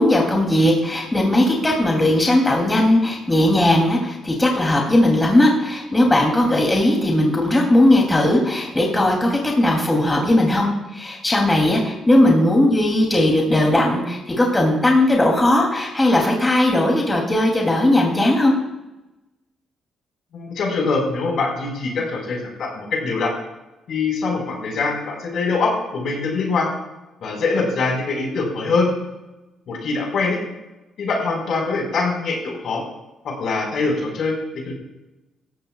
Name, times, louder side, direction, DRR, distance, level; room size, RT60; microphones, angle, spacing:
voice 1, 0.0-18.5, left 1 dB, 15° left, -1 dB, 2.9 m, -18 dB
voice 2, 20.3-23.3 23.9-26.7 27.2-28.9 29.7-30.4 31.0-32.8 33.2-34.3 34.6-34.7, left 4 dB, 65° left, 0 dB, 4.7 m, -23 dB
17.5 x 14.5 x 2.4 m, 1.0 s
cardioid pair, 90°, 0 cm